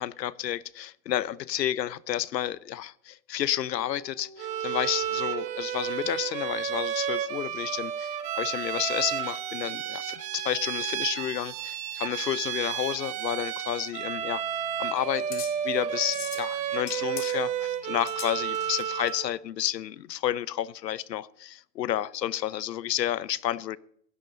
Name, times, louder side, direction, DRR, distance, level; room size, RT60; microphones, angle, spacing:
voice 1, 0.0-14.4 14.8-23.8, left 12 dB, 80° left, 0.9 m, -31 dB
sound 1, 3.5-7.5 8.8-11.0, right 3 dB, 20° left, 4.0 m, -52 dB
Bowed string instrument, 4.4-19.3, right 9 dB, 15° right, 0.8 m, -32 dB
sound 2, 13.9-19.1, left 8 dB, 60° left, 3.1 m, -43 dB
16.5 x 12.5 x 3.9 m
hypercardioid pair, 150°, 49 cm